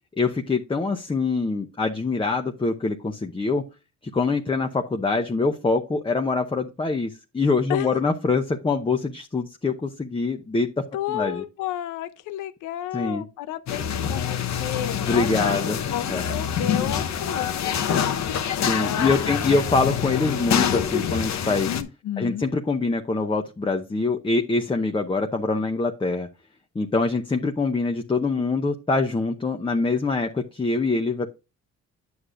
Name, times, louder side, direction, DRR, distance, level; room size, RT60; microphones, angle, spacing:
voice 1, 0.2-3.6 4.1-10.7 11.1-11.4 12.9-13.2 15.0-16.2 18.6-21.7 22.2-26.3 26.7-31.3, left 3 dB, 15° left, 0.8 m, -24 dB
voice 2, 10.9-18.2 18.4-19.6 21.7-22.5, left 11 dB, 90° left, 0.8 m, -32 dB
sound 1, 13.7-21.8, left 8 dB, 65° left, 1.0 m, -26 dB
9.5 x 6.5 x 2.5 m
cardioid pair, 90°, 30 cm